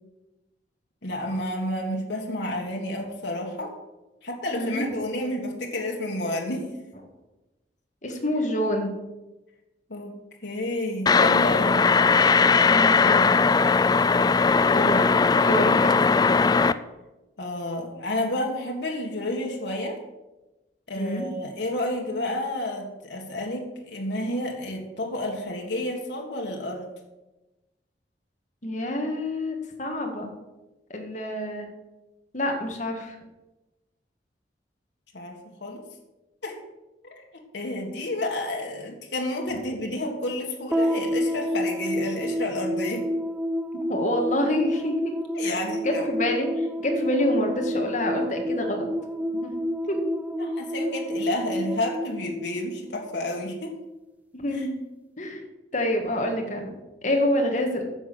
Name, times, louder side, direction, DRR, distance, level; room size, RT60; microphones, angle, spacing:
voice 1, 1.0-3.7 4.2-6.7 9.9-11.9 17.4-20.0 20.9-26.9 35.1-35.8 36.4-36.6 37.0-43.1 45.4-46.1 50.4-53.7 54.5-54.7, left 1 dB, 80° left, 0 dB, 1.8 m, -30 dB
voice 2, 4.6-4.9 8.0-8.9 12.7-13.4 14.7-16.3 20.9-21.3 28.6-30.3 30.9-31.7 32.3-33.1 43.9-45.1 45.4-48.9 49.4-49.5 49.9-50.1 54.3-54.8 55.2-55.4 55.7-56.7 57.0-57.8, left 1 dB, 45° left, 2 dB, 1.9 m, -27 dB
sound 1, 11.1-16.7, left 4 dB, 20° left, 0.3 m, -19 dB
sound 2, 40.7-53.2, equal, 10° right, 0.8 m, -29 dB
9.8 x 6.5 x 7.7 m, 1.1 s
head